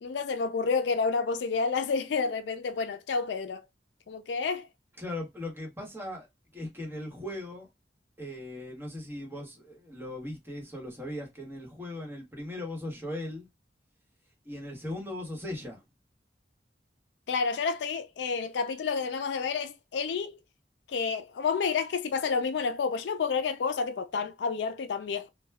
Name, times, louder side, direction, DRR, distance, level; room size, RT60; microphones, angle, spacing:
voice 1, 0.0-3.7 4.1-4.7 17.3-20.4 20.9-25.3, left 5 dB, 75° left, 0.4 m, -30 dB
voice 2, 5.0-6.3 6.5-7.7 8.2-13.5 14.4-15.8, left 1 dB, 15° right, 1.1 m, -38 dB
2.2 x 2.1 x 3.3 m
head